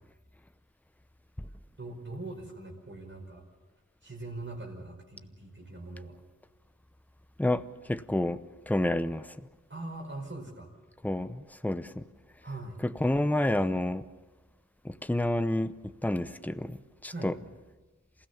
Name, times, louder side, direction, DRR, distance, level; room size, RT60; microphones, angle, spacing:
voice 1, 1.8-3.4 4.0-6.2 9.7-10.7 12.4-12.8 17.1-17.3, right 2 dB, 40° right, 0 dB, 5.1 m, -41 dB
voice 2, 7.4-8.4 8.7-9.3 11.0-12.0 13.0-14.0 14.8-15.7 16.0-16.8 17.0-17.3, left 1 dB, 5° left, 12 dB, 0.7 m, -29 dB
27.5 x 16.0 x 7.1 m, 1.3 s
wide cardioid pair, 75°, 30 cm